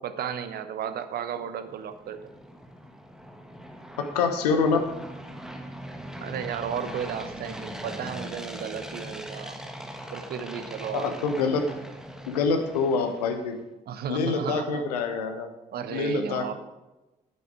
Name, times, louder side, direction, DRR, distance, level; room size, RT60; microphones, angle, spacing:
voice 1, 0.0-2.2 6.2-9.6 10.1-11.1 13.9-14.8 15.7-16.5, right 8 dB, 50° right, 10 dB, 1.0 m, -34 dB
sound 1, 1.4-13.6, equal, 5° right, 1.5 m, -41 dB
voice 2, 4.0-4.9 10.9-11.7 12.3-13.6 14.1-15.5 15.9-16.5, left 4 dB, 75° left, 7 dB, 1.0 m, -26 dB
9.9 x 9.3 x 4.8 m, 1.0 s
figure-of-eight pair, 45°, 20 cm